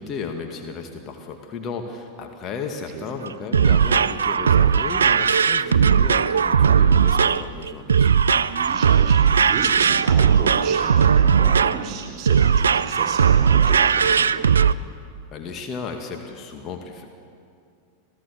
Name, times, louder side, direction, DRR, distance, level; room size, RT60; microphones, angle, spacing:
voice 1, 0.0-8.2 15.3-17.1, left 5 dB, 30° left, 4 dB, 2.1 m, -34 dB
sound 1, 3.2-14.7, right 7 dB, 70° right, 0.4 m, -18 dB
voice 2, 8.5-14.5, right 6 dB, 40° right, 3 dB, 3.8 m, -34 dB
26.5 x 17.0 x 7.0 m, 2.4 s
figure-of-eight pair, 90°, 0 cm